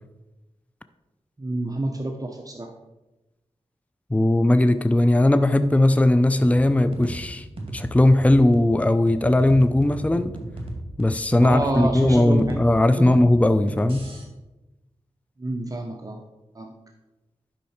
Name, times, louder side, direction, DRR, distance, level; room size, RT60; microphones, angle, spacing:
voice 1, 1.4-2.7 11.4-12.6 13.0-13.1 15.4-16.2 16.6-16.7, right 1 dB, 30° right, 3 dB, 0.9 m, -28 dB
voice 2, 4.1-7.4 7.7-10.4 11.0-14.1, left 1 dB, 10° left, 11 dB, 0.5 m, -18 dB
sound 1, 6.4-14.2, right 1 dB, 50° right, 2.3 m, -36 dB
11.5 x 5.6 x 4.4 m, 1.0 s
wide cardioid pair, 65°, 12 cm